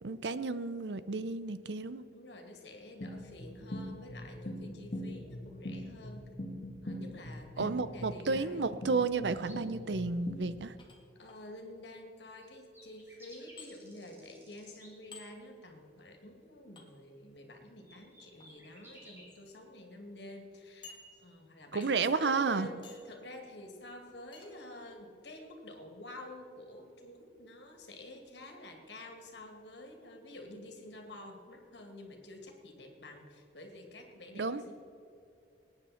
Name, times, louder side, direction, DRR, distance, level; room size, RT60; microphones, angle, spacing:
voice 1, 0.0-2.0 7.6-10.7 21.7-22.7 34.3-34.6, right 4 dB, 75° right, 14 dB, 0.6 m, -32 dB
voice 2, 2.1-6.2 6.8-8.7 11.1-34.7, left 1 dB, 80° left, 3 dB, 2.4 m, -49 dB
sound 1, 3.0-10.7, left 1 dB, 55° left, 1.6 m, -43 dB
sound 2, 9.4-9.6 12.4-12.5 12.7-14.9 17.7-19.4, equal, 15° right, 3.3 m, -57 dB
sound 3, 10.8-11.4 13.6-13.7 15.1-15.3 16.8-16.9 18.2-18.5 19.2-19.3 19.7-19.8 20.8-21.5 21.8-22.2 22.8-23.2 24.3-24.5, left 4 dB, 30° left, 2.0 m, -53 dB
19.0 x 9.8 x 4.4 m, 2.6 s
head